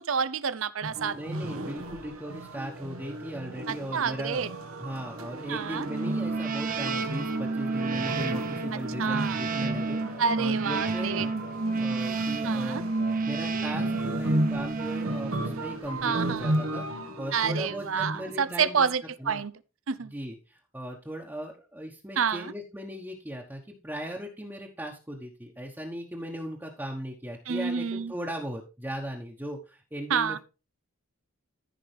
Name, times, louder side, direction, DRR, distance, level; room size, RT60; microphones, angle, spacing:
voice 1, 0.1-1.2 3.7-4.5 5.5-5.9 9.0-9.4 10.2-11.3 12.4-12.8 16.0-16.5 17.3-19.5 19.9-20.1 22.2-22.5 27.5-28.1 30.1-30.4, right 6 dB, 65° right, 0.6 m, -28 dB
sound 1, 0.8-18.6, right 1 dB, 85° right, 1.5 m, -35 dB
voice 2, 1.1-4.5 4.8-11.3 11.8-12.8 13.2-16.9 17.2-18.9 19.2-19.4 20.0-30.4, equal, 10° right, 1.2 m, -38 dB
sound 2, 5.9-15.8, right 3 dB, 40° right, 0.9 m, -30 dB
14.5 x 5.2 x 3.4 m
head